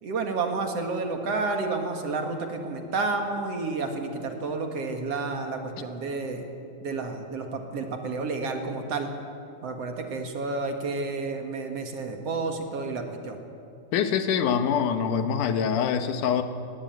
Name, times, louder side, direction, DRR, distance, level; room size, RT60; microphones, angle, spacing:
voice 1, 0.0-6.5 6.8-9.1 9.6-13.4, right 3 dB, 55° right, 4 dB, 2.7 m, -30 dB
voice 2, 13.9-16.4, left 7 dB, 85° left, 9 dB, 2.7 m, -24 dB
18.5 x 18.0 x 9.2 m, 2.7 s
omnidirectional pair, 3.5 m